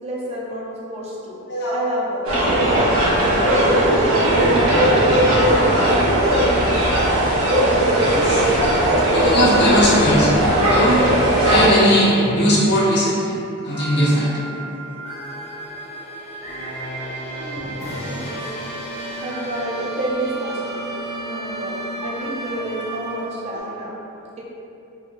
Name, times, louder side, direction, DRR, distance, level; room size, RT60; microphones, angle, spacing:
voice 1, 0.0-1.4 1.7-2.3 2.7-5.1 5.5-6.6 17.2-18.6 19.2-20.9 21.3-23.9, right 1 dB, 30° right, -5 dB, 0.4 m, -30 dB
sound 1, 2.2-11.7, right 1 dB, 65° right, 0.8 m, -17 dB
voice 2, 8.0-8.4 9.1-10.3 10.7-11.0 11.4-13.4 13.6-14.3, equal, 50° left, -7 dB, 0.7 m, -18 dB
sound 2, 8.2-23.6, right 1 dB, 30° left, 0.4 m, -33 dB
3.1 x 2.3 x 2.4 m, 2.7 s
head